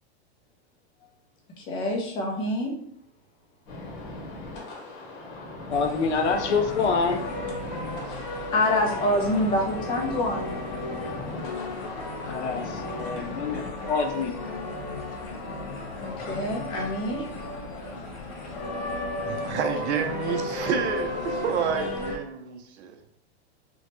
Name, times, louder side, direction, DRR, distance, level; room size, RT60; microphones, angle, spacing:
voice 1, 1.6-2.7 8.1-10.5 16.0-17.3, left 1 dB, 15° left, 0.3 m, -26 dB
sound 1, 3.7-13.7, left 2 dB, 50° left, 0.9 m, -39 dB
voice 2, 5.7-7.2 12.2-14.3, left 5 dB, 85° left, 0.6 m, -26 dB
sound 2, 5.7-22.2, left 2 dB, 70° left, 1.2 m, -34 dB
voice 3, 19.3-23.2, right 7 dB, 90° right, 0.6 m, -29 dB
2.9 x 2.1 x 2.9 m
supercardioid pair, 145°, 33 cm